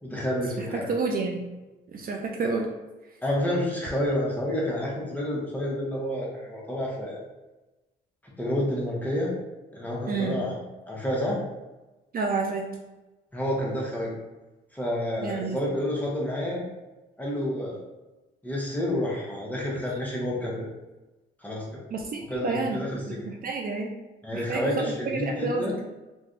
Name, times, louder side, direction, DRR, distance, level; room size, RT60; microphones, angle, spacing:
voice 1, 0.0-0.9 3.2-7.2 8.4-9.3 9.7-10.6 10.9-11.4 13.3-14.1 14.7-16.6 17.2-17.8 18.4-20.7 21.4-21.8 22.3-23.2 24.2-25.8, left 1 dB, 10° left, -4 dB, 0.9 m, -29 dB
voice 2, 0.6-1.5 1.9-2.7 10.1-10.5 12.1-12.7 15.2-15.6 21.9-23.9 24.3-24.7 25.1-25.7, right 4 dB, 45° right, 1 dB, 0.4 m, -29 dB
3.3 x 2.2 x 2.5 m, 1.1 s
cardioid pair, 90°, 20 cm